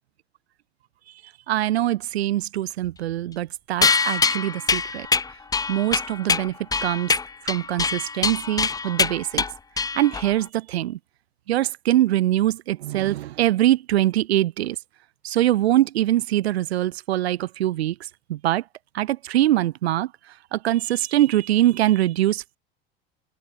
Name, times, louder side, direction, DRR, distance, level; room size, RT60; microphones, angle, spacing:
voice 1, 1.5-5.1 5.7-7.1 7.4-9.4 9.9-11.0 11.5-14.8 15.2-18.0 18.3-18.6 18.9-20.1 20.5-22.6, right 14 dB, 90° right, 0.6 m, -23 dB
sound 1, 3.8-10.4, left 4 dB, 10° left, 0.6 m, -24 dB
open air
hypercardioid pair, 85°, 31 cm